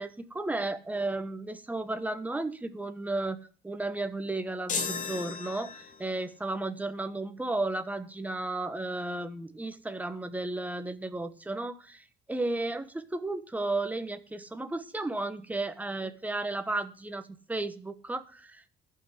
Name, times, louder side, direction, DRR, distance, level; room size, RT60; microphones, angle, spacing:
voice 1, 0.0-18.7, right 2 dB, 10° right, 10 dB, 1.2 m, -34 dB
sound 1, 4.7-6.2, left 5 dB, 50° left, 2.8 m, -35 dB
14.0 x 5.9 x 8.0 m, 0.41 s
cardioid pair, 110°, 17 cm